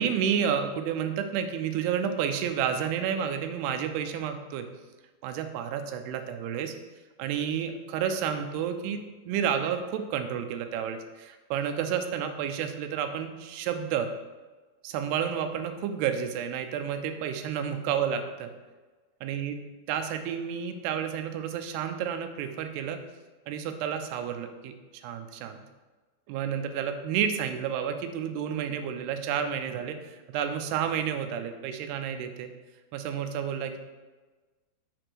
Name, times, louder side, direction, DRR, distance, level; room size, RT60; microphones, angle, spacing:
voice 1, 0.0-4.7 5.2-6.8 7.2-14.1 14.8-18.5 19.2-19.6 19.9-23.0 23.5-25.6 26.3-32.5 32.9-33.8, right 8 dB, 80° right, 7 dB, 2.6 m, -30 dB
6.7 x 4.8 x 6.1 m, 1.3 s
omnidirectional pair, 5.0 m